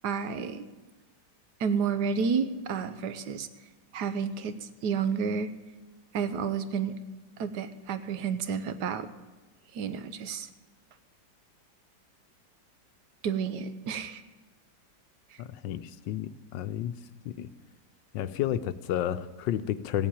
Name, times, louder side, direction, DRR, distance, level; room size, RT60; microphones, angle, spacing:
voice 1, 0.0-0.6 1.6-3.5 3.9-5.5 6.1-6.9 7.4-9.1 9.7-10.5 13.2-14.2, right 6 dB, 65° right, 12 dB, 1.3 m, -30 dB
voice 2, 15.4-17.0 17.2-17.5 18.1-20.1, left 11 dB, 80° left, 13 dB, 1.3 m, -31 dB
16.5 x 7.2 x 9.0 m, 1.2 s
omnidirectional pair, 2.0 m